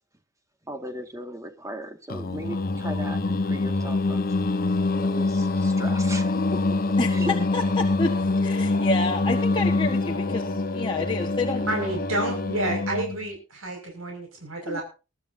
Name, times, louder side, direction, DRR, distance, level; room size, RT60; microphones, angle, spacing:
voice 1, 0.7-4.4 5.0-6.8 7.1-7.4, right 1 dB, 15° right, 5 dB, 2.0 m, -37 dB
Singing, 2.1-13.2, left 3 dB, 45° left, 1.1 m, -25 dB
voice 2, 7.5-11.6 14.7-14.8, left 2 dB, 25° left, 0 dB, 1.5 m, -29 dB
voice 3, 11.7-14.8, right 1 dB, 85° right, 1 dB, 6.0 m, -30 dB
22.0 x 12.5 x 2.8 m, 0.31 s
head